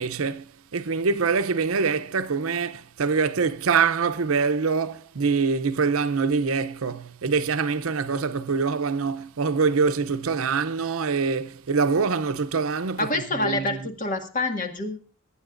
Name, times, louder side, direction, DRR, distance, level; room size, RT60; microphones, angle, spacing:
voice 1, 0.0-13.8, right 5 dB, 80° right, 0.6 m, -24 dB
voice 2, 13.0-15.0, left 2 dB, 40° left, 1.8 m, -27 dB
23.5 x 9.8 x 2.5 m
head